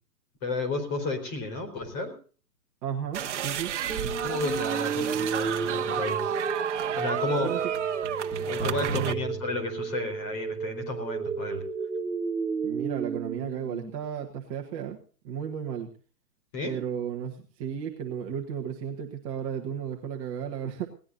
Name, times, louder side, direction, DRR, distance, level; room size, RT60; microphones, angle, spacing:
voice 1, 0.4-2.1 3.8-6.4 7.0-7.5 8.5-11.6 16.5-16.8, left 2 dB, 25° left, 5 dB, 4.5 m, -32 dB
voice 2, 2.8-3.7 7.4-7.6 8.9-9.2 12.6-15.0 15.2-15.9 16.6-20.9, right 8 dB, 20° right, 1 dB, 1.5 m, -34 dB
sound 1, 3.1-9.1, right 9 dB, 50° right, 1.2 m, -32 dB
sound 2, 3.9-13.9, right 5 dB, 5° right, 1.2 m, -32 dB
21.0 x 18.0 x 2.7 m, 0.40 s
hypercardioid pair, 165°, 47 cm